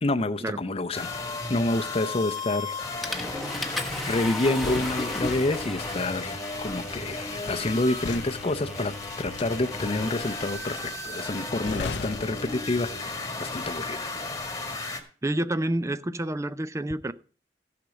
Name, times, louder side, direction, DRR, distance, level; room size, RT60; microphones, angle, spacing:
voice 1, 0.0-1.1 1.5-2.7 4.0-8.9 9.2-12.9 13.4-14.1, left 2 dB, 35° left, 0.6 m, -28 dB
sound 1, 0.9-15.0, left 3 dB, 20° left, 1.6 m, -35 dB
Water / Toilet flush, 2.4-2.6 3.0-10.9, left 1 dB, ahead, 1.2 m, -37 dB
sound 2, 3.9-13.2 13.5-13.8, left 5 dB, 85° left, 0.5 m, -40 dB
voice 2, 15.2-17.1, right 1 dB, 15° right, 0.5 m, -28 dB
15.0 x 6.0 x 5.1 m
head